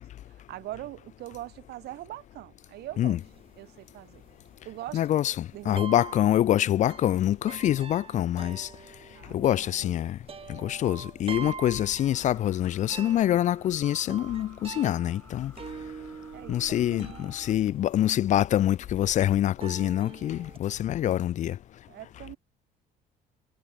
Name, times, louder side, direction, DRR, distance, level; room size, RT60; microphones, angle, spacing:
voice 1, 0.3-3.2 3.6-4.2 4.6-5.1 5.5-6.0 9.1-10.1 16.3-17.2 21.9-22.4, right 16 dB, 75° right, 1.4 m, -42 dB
sound 1, 3.2-20.6, right 6 dB, 35° right, 4.1 m, -45 dB
voice 2, 4.9-8.7 9.3-10.2 10.5-15.5 16.5-21.6, left 12 dB, 45° left, 0.4 m, -25 dB
sound 2, 12.1-17.5, left 2 dB, 10° left, 7.1 m, -57 dB
sound 3, 12.3-13.1 14.2-14.6 16.0-16.5 18.6-19.0 19.9-20.4, left 18 dB, 85° left, 4.1 m, -60 dB
cardioid pair, 110°, 17 cm